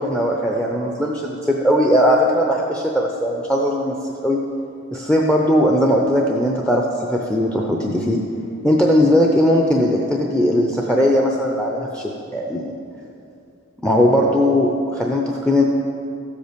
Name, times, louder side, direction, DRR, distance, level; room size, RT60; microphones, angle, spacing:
voice 1, 0.0-4.4 4.9-8.2 8.6-12.7 13.8-15.6, equal, 5° left, -1 dB, 0.6 m, -18 dB
13.5 x 8.1 x 5.2 m, 2.5 s
head